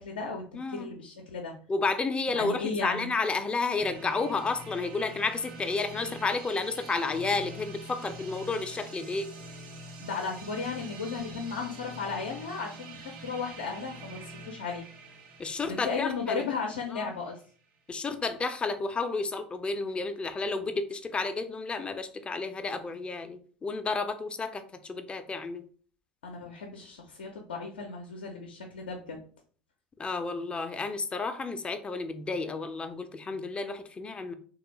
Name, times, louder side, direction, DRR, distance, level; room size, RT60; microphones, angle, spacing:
voice 1, 0.0-0.4 0.7-1.5 2.3-3.1 10.0-14.9 15.6-17.4 26.2-29.2, left 4 dB, 75° left, 2 dB, 0.5 m, -35 dB
voice 2, 0.5-0.9 1.7-9.3 15.4-16.5 16.9-17.1 17.9-25.6 30.0-34.3, left 3 dB, 20° left, 9 dB, 0.4 m, -31 dB
sound 1, 3.8-17.5, right 1 dB, 55° right, 1.0 m, -45 dB
3.2 x 2.3 x 3.0 m, 0.44 s
figure-of-eight pair, 75°, 5 cm